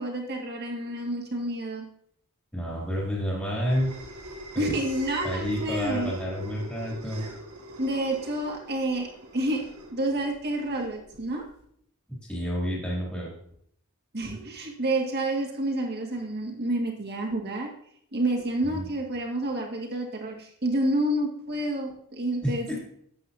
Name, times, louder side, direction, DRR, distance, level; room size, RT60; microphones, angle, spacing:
voice 1, 0.0-1.9 4.6-6.1 7.8-9.1 9.3-9.6 9.9-11.4 14.1-17.7 18.1-22.8, right 1 dB, 50° right, 0 dB, 1.9 m, -29 dB
voice 2, 2.5-3.9 4.5-4.7 5.2-7.2 12.3-13.3 18.7-18.9 22.4-22.8, equal, 10° left, -6 dB, 2.6 m, -29 dB
sound 1, 2.8-11.6, right 1 dB, 85° right, 1.6 m, -42 dB
12.0 x 8.2 x 2.7 m, 0.67 s
head